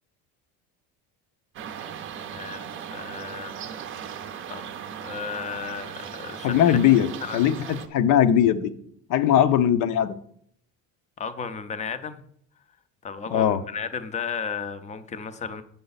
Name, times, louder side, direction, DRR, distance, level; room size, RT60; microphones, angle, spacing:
sound 1, 1.5-7.9, right 8 dB, 35° right, 0.6 m, -38 dB
voice 1, 2.2-3.5 4.5-4.7 5.0-6.8 7.2-7.4 11.2-12.2 13.0-15.6, left 6 dB, 20° left, 11 dB, 0.5 m, -34 dB
voice 2, 6.4-7.1 7.3-8.7 9.1-10.2 13.3-13.6, left 10 dB, 65° left, 14 dB, 0.7 m, -20 dB
7.7 x 6.7 x 4.0 m, 0.64 s
cardioid pair, 160°, 34 cm